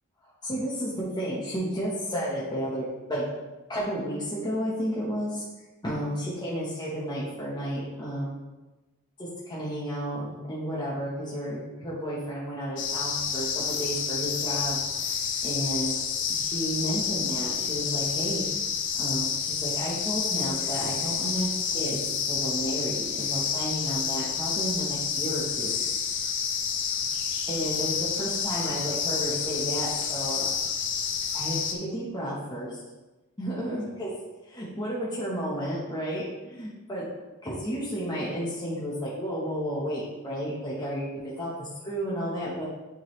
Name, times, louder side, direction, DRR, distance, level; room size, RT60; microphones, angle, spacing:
voice 1, 0.4-3.3 3.7-5.4 5.8-8.4 9.2-18.4 19.0-25.8 27.5-30.4 31.3-32.8 33.4-34.1 34.4-37.0 37.4-42.6, equal, 20° left, -7 dB, 1.1 m, -32 dB
sound 1, 12.8-31.8, left 7 dB, 55° left, 0.6 m, -29 dB
9.1 x 3.9 x 3.1 m, 1.1 s
head